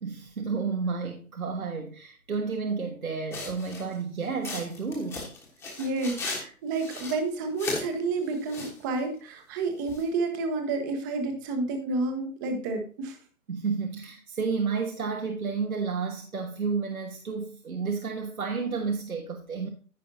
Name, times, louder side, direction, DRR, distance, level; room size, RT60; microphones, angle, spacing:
voice 1, 0.0-5.3 13.5-19.7, right 5 dB, 70° right, 3 dB, 1.4 m, -31 dB
sound 1, 3.3-3.9 4.4-6.4 6.7-7.9 8.3-8.8 9.9-10.0, left 3 dB, 5° left, 1.3 m, -36 dB
voice 2, 5.8-13.2, right 3 dB, 15° right, 6 dB, 0.9 m, -30 dB
14.0 x 5.5 x 2.8 m, 0.39 s
figure-of-eight pair, 135°, 44 cm